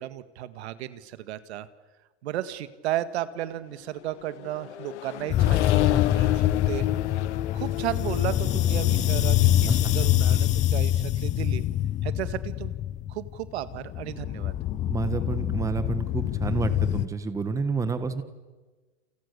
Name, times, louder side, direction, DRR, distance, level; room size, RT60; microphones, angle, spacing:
voice 1, 0.0-1.7 2.2-6.8 7.5-11.6 12.0-12.7 13.1-14.5, right 13 dB, 70° right, 12 dB, 1.9 m, -34 dB
Accelerating revving vroom, 4.0-10.6, left 14 dB, 80° left, 1.4 m, -32 dB
sound 1, 5.3-17.0, left 12 dB, 20° left, 0.8 m, -25 dB
voice 2, 14.9-18.2, right 4 dB, 10° right, 10 dB, 1.4 m, -29 dB
29.5 x 28.5 x 6.9 m, 1.3 s
supercardioid pair, 155°, 34 cm